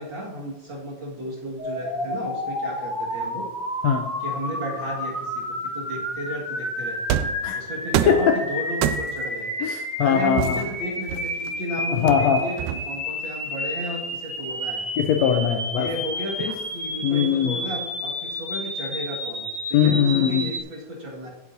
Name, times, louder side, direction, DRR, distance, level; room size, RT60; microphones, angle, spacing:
voice 1, 0.0-3.5 4.2-7.0 7.5-9.5 10.0-14.8 15.7-21.3, equal, 45° right, -3 dB, 2.2 m, -33 dB
sound 1, 1.6-20.6, left 1 dB, 15° left, 2.8 m, -31 dB
sound 2, 7.1-7.5 7.9-8.3 8.8-9.3 10.4-11.5 12.1-13.1, right 10 dB, 85° right, 2.1 m, -26 dB
voice 2, 8.1-8.4 9.6-10.6 11.9-12.4 15.0-15.9 16.4-16.5 17.0-17.6 19.7-20.5, left 8 dB, 75° left, 5 dB, 1.7 m, -21 dB
18.0 x 8.0 x 2.7 m, 1.1 s
omnidirectional pair, 3.5 m